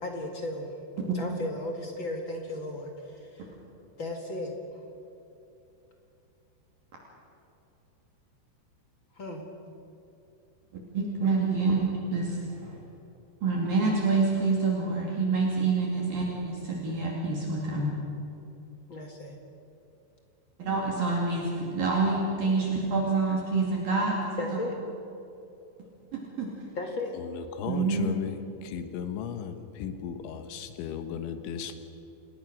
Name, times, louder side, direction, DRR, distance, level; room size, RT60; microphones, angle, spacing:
voice 1, 0.0-0.7 1.1-3.5 4.0-4.5 9.1-9.5 18.9-19.4 24.4-24.7 26.8-27.1, left 2 dB, 45° left, 2 dB, 1.7 m, -35 dB
voice 2, 10.9-11.8 12.1-12.8 13.4-17.9 20.6-24.6 26.1-26.5 27.7-28.1, right 3 dB, 55° right, -2 dB, 4.1 m, -27 dB
voice 3, 27.1-31.7, left 7 dB, 85° left, 8 dB, 3.7 m, -36 dB
29.0 x 19.5 x 6.4 m, 2.8 s
omnidirectional pair, 5.3 m